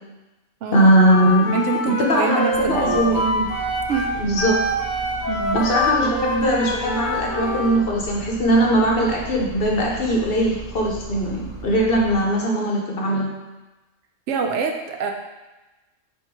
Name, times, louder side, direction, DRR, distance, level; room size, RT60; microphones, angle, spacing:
voice 1, 0.7-1.5 2.0-3.4 4.2-4.6 5.5-13.3, right 1 dB, 55° left, -1 dB, 0.9 m, -20 dB
Wind instrument woodwind instrument, 1.0-7.8, left 2 dB, 85° left, 1.2 m, -25 dB
voice 2, 1.5-3.0 3.9-4.2 5.3-5.6 14.3-15.1, right 5 dB, 70° right, 3 dB, 0.8 m, -25 dB
Engine, 2.5-12.2, right 4 dB, 20° right, 0.6 m, -37 dB
3.6 x 3.0 x 4.4 m, 1.1 s
omnidirectional pair, 1.3 m